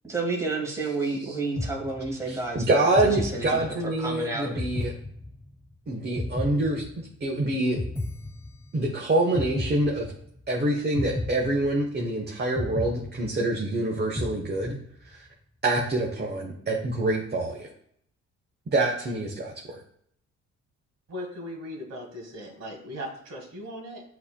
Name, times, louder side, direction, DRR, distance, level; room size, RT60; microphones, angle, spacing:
voice 1, 0.0-2.8 3.2-3.7 4.0-4.6, right 3 dB, 10° right, -1 dB, 1.5 m, -30 dB
voice 2, 1.0-1.4 2.2-4.9 5.9-7.8 8.7-10.1 10.5-14.8 15.0-15.2 15.6-17.7 18.7-19.8, right 2 dB, 35° right, -1 dB, 1.0 m, -26 dB
sound 1, 1.6-2.4 2.9-4.0 4.6-5.7 6.2-7.3 7.8-8.9 9.3-10.4 10.9-12.1 12.6-13.7 14.2-15.0, left 2 dB, 10° left, 0.5 m, -33 dB
voice 3, 21.1-24.0, equal, 60° right, 0 dB, 1.9 m, -38 dB
7.9 x 2.9 x 2.2 m, 0.67 s
cardioid pair, 75°, 30 cm